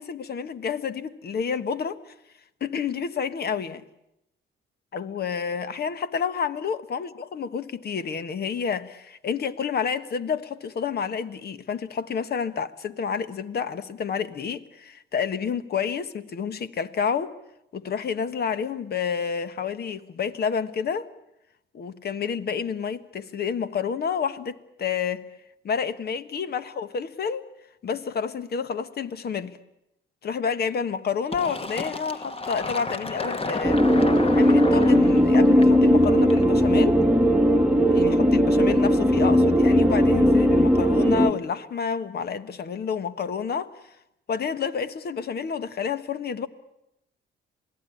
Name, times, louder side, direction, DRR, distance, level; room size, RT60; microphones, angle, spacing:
voice 1, 0.0-2.1 2.6-3.8 4.9-17.3 17.7-21.1 21.7-25.3 25.6-27.5 27.8-29.6 30.2-33.8 34.3-37.0 37.9-43.7 44.3-46.5, left 6 dB, 55° left, 1.4 m, -29 dB
Fill (with liquid), 31.3-36.7, left 3 dB, 30° left, 1.3 m, -32 dB
sound 1, 33.6-41.3, equal, 5° right, 1.5 m, -18 dB
27.0 x 18.5 x 9.9 m
cardioid pair, 90°, 20 cm